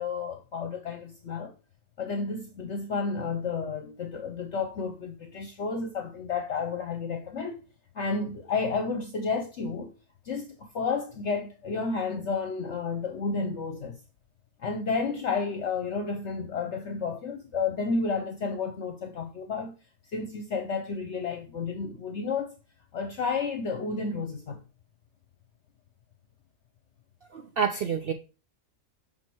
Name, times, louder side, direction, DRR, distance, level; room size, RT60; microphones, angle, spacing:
voice 1, 0.0-1.5 2.0-7.6 7.9-9.9 10.2-14.0 14.6-19.7 20.1-22.5 22.9-24.6, left 4 dB, 60° left, 1.0 m, -31 dB
voice 2, 27.3-28.1, right 7 dB, 70° right, 0.5 m, -28 dB
6.1 x 4.1 x 4.4 m
omnidirectional pair, 1.5 m